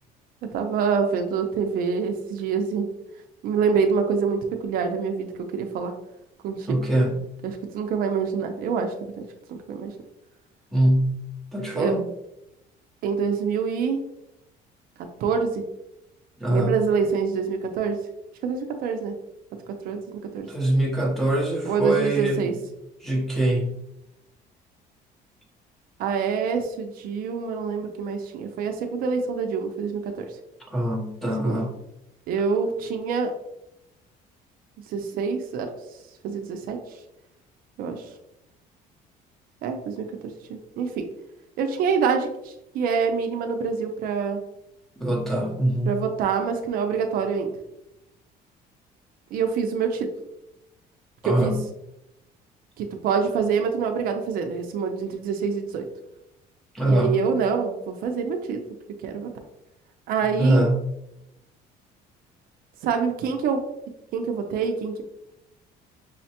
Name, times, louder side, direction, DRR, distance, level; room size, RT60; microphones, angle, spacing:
voice 1, 0.4-2.9 3.4-5.9 6.4-6.8 7.4-9.9 11.7-11.9 13.0-14.0 15.2-15.6 16.5-18.0 18.4-19.2 19.8-20.5 21.7-22.5 26.0-30.4 31.4-31.6 32.3-33.3 34.9-37.0 37.8-38.1 39.6-41.1 41.6-44.4 45.9-47.5 49.3-50.1 51.2-51.5 52.8-55.9 56.8-58.6 59.0-59.3 60.1-60.7 62.8-63.6 64.1-65.0, right 6 dB, 60° right, 5 dB, 0.5 m, -26 dB
voice 2, 6.7-7.2 10.7-11.2 11.5-12.1 16.4-16.7 20.5-22.5 23.0-23.7 30.7-31.7 45.0-45.9 51.2-51.6 56.7-57.2 60.4-60.8, right 1 dB, ahead, -2 dB, 0.7 m, -23 dB
5.5 x 2.1 x 2.8 m, 0.85 s
cardioid pair, 160°, 17 cm